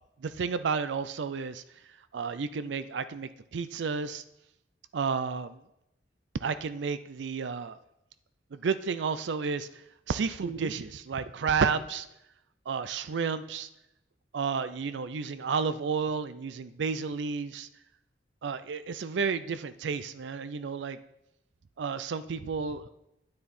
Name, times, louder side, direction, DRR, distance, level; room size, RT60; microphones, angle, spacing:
voice 1, 0.2-1.6 2.1-3.3 3.5-4.2 4.9-5.6 6.4-7.8 8.6-9.7 10.1-12.1 12.7-13.7 14.3-17.7 18.4-21.0 21.8-22.9, right 5 dB, 85° right, 13 dB, 0.4 m, -31 dB
9.5 x 9.2 x 4.2 m, 0.86 s
head